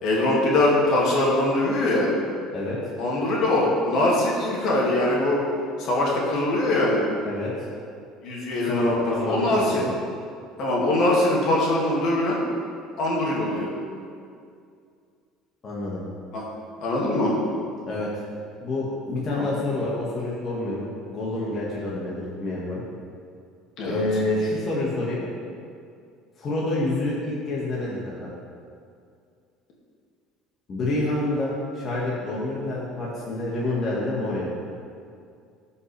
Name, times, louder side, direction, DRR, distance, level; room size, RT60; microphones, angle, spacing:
voice 1, 0.0-2.1 3.0-5.4 5.8-7.1 8.2-9.8 10.6-12.4 13.0-13.7 16.3-16.5 16.8-17.3 19.3-19.5 23.8-24.0, left 1 dB, 60° left, -4 dB, 2.3 m, -22 dB
voice 2, 7.2-7.5 8.6-9.9 15.6-16.0 17.8-18.1 18.6-22.8 23.8-25.3 26.4-28.0 30.7-34.5, left 2 dB, 35° left, -6 dB, 1.8 m, -28 dB
15.0 x 5.6 x 3.4 m, 2.3 s
cardioid pair, 120°, 0 cm